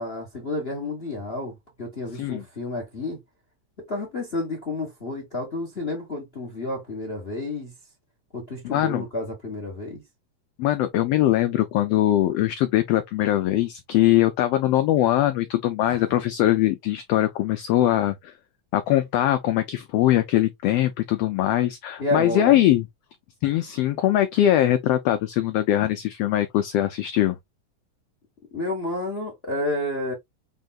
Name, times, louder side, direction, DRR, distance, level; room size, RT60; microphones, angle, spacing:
voice 1, 0.0-3.2 3.9-7.7 8.3-10.0 15.9-16.0 22.0-22.6 28.5-30.1, left 2 dB, 45° left, 0.8 m, -30 dB
voice 2, 8.7-9.0 10.6-18.3 18.7-22.8 23.4-27.4, left 13 dB, 85° left, 1.4 m, -21 dB
5.4 x 3.5 x 2.3 m
omnidirectional pair, 3.3 m